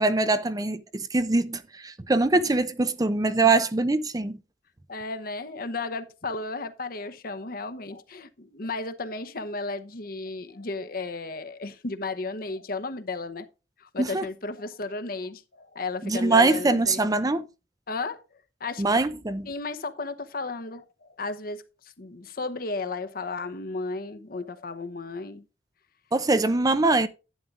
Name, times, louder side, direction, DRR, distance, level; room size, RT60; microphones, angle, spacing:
voice 1, 0.0-4.4 14.0-14.2 16.0-17.5 18.8-19.5 26.1-27.1, right 3 dB, 20° right, 0.6 m, -23 dB
voice 2, 4.9-13.5 13.8-17.0 17.9-18.2 18.6-18.9 19.4-25.4, left 3 dB, 55° left, 0.9 m, -34 dB
11.0 x 9.6 x 2.5 m
head